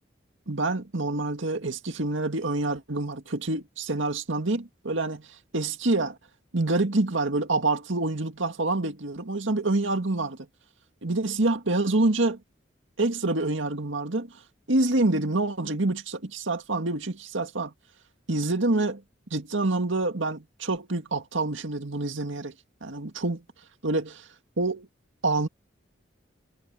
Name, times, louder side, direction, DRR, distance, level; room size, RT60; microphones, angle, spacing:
voice 1, 0.5-6.2 6.5-10.4 11.0-12.4 13.0-14.3 14.7-17.7 18.3-19.0 19.3-22.5 22.8-23.4 23.8-24.3 24.6-24.9 25.2-25.5, right 2 dB, 75° right, 2.0 m, -27 dB
head